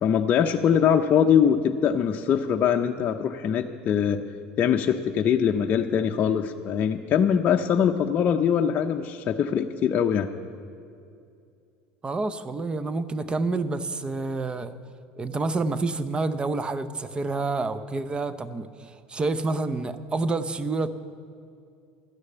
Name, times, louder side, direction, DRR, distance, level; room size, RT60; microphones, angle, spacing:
voice 1, 0.0-4.2 4.6-10.3, left 8 dB, 45° left, 4 dB, 0.6 m, -22 dB
voice 2, 12.0-14.7 15.2-20.9, right 3 dB, 20° right, 13 dB, 0.7 m, -28 dB
13.0 x 6.5 x 9.9 m, 2.4 s
supercardioid pair, 100°, 4 cm